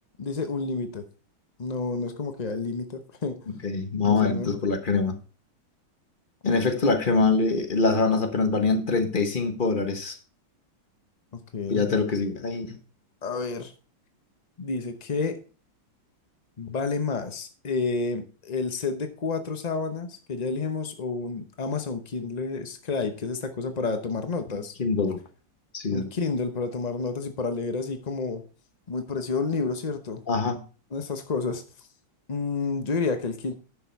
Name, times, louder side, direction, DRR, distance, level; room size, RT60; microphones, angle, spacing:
voice 1, 0.2-1.1 1.6-3.5 4.0-4.6 11.5-11.9 13.2-13.7 14.6-15.4 16.6-24.7 25.9-28.4 28.9-30.2 30.9-31.9 32.3-33.5, left 4 dB, 60° left, 0.4 m, -30 dB
voice 2, 3.6-5.2 6.4-10.2 11.7-12.8 24.8-25.2 25.7-26.1 30.3-30.6, left 4 dB, 30° left, 1.1 m, -24 dB
10.5 x 6.7 x 4.5 m
omnidirectional pair, 2.2 m